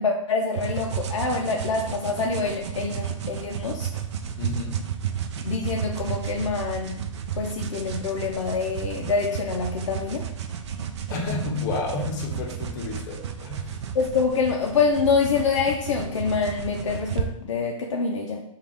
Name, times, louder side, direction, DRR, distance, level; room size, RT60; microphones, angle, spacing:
voice 1, 0.0-3.9 5.4-7.0 7.4-10.2 13.9-18.4, left 5 dB, 60° left, 1 dB, 0.5 m, -26 dB
sound 1, 0.6-17.3, right 8 dB, 55° right, 0.5 m, -32 dB
voice 2, 4.4-4.9 11.1-13.7, left 4 dB, 35° left, 1 dB, 0.8 m, -31 dB
4.9 x 2.4 x 3.6 m, 0.78 s
hypercardioid pair, 140°, 17 cm